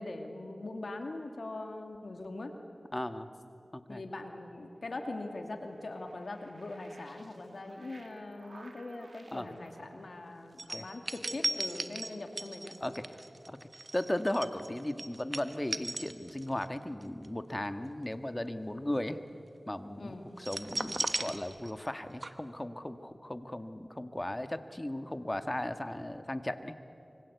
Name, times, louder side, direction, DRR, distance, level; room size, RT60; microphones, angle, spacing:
voice 1, 0.0-2.5 3.9-12.8 20.0-20.3, left 2 dB, 85° left, 4 dB, 2.4 m, -42 dB
voice 2, 2.9-3.3 3.7-4.0 9.3-9.6 10.7-10.9 12.8-13.0 13.5-13.6 13.9-19.2 19.7-26.7, left 1 dB, 25° left, 9 dB, 1.6 m, -36 dB
sound 1, 4.9-10.6, right 2 dB, 70° right, 2.2 m, -57 dB
sound 2, 10.6-16.7 17.0-17.3 20.4-22.0 22.2-22.3, right 2 dB, 50° right, 1.3 m, -37 dB
25.5 x 24.5 x 8.2 m, 2.8 s
wide cardioid pair, 40°, 0 cm